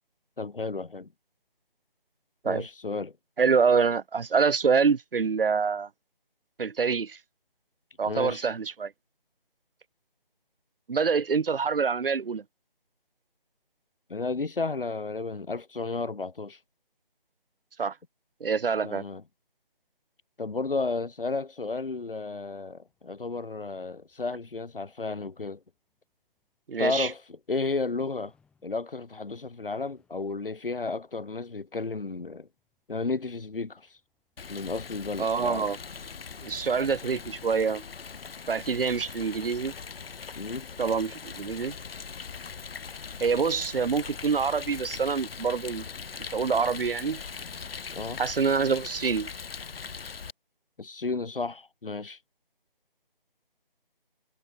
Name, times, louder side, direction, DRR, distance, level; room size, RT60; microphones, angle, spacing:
voice 1, 0.4-1.1 2.4-3.2 8.0-8.4 14.1-16.6 18.8-19.2 20.4-25.6 26.8-28.3 28.6-32.5 32.9-34.0 34.5-35.7 40.4-40.7 47.9-48.2 50.8-52.2, left 3 dB, 65° left, 1.6 m, -33 dB
voice 2, 3.4-5.9 6.6-7.2 8.0-8.9 10.9-12.4 17.8-18.0 18.4-19.0 26.7-27.1 35.2-35.8 36.4-37.8 38.5-39.7 40.8-41.7 43.2-45.8 46.2-47.2 48.2-49.3, right 5 dB, 70° right, 0.7 m, -26 dB
sound 1, 22.9-42.8, left 5 dB, 5° left, 7.1 m, -75 dB
Rain, 34.4-50.3, left 6 dB, 85° left, 0.6 m, -41 dB
figure-of-eight pair, 160°, 29 cm